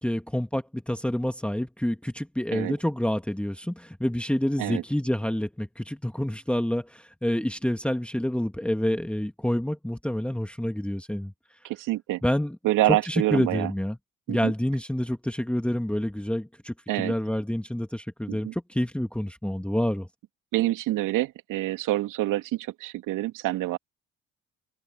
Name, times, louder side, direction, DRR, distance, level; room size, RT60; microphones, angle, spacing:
voice 1, 0.0-11.3 12.2-12.6 12.9-14.0 14.3-20.1, left 1 dB, 5° left, 2.2 m, -28 dB
voice 2, 11.6-12.2 12.6-13.7 14.3-14.5 16.9-17.1 18.3-18.5 20.5-23.8, right 16 dB, 70° right, 2.7 m, -27 dB
open air
hypercardioid pair, 55°, 33 cm